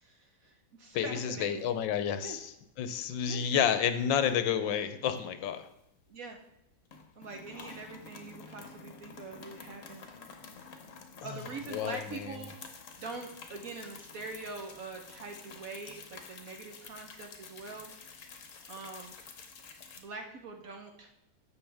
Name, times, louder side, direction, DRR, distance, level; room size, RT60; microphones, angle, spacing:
voice 1, 0.0-1.7 2.2-2.4 3.3-3.5 6.1-6.4 7.2-10.2 11.2-12.5 13.0-18.2 18.7-19.2 20.0-21.1, right 3 dB, 55° right, 3 dB, 1.1 m, -44 dB
voice 2, 0.9-2.5 2.8-5.7 7.6-7.7 11.2-11.4 11.7-12.4, left 8 dB, 75° left, 10 dB, 1.4 m, -30 dB
sound 1, 1.3-2.0 2.3-2.5 2.9-3.7 4.2-6.2 6.4-6.6 6.9-20.0, left 5 dB, 50° left, 1.1 m, -50 dB
11.0 x 7.4 x 3.4 m, 0.82 s
omnidirectional pair, 2.1 m